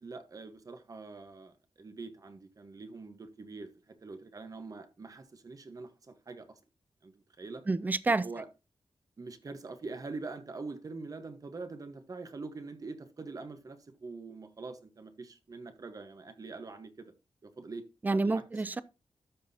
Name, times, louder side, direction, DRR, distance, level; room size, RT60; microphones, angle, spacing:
voice 1, 0.0-6.6 7.0-7.6 8.1-8.5 9.2-17.1 17.4-18.4 18.7-18.8, right 3 dB, 40° right, 1.2 m, -44 dB
voice 2, 7.7-8.3 18.0-18.8, right 3 dB, 20° right, 0.4 m, -28 dB
12.5 x 6.1 x 2.8 m
wide cardioid pair, 145°, 9 cm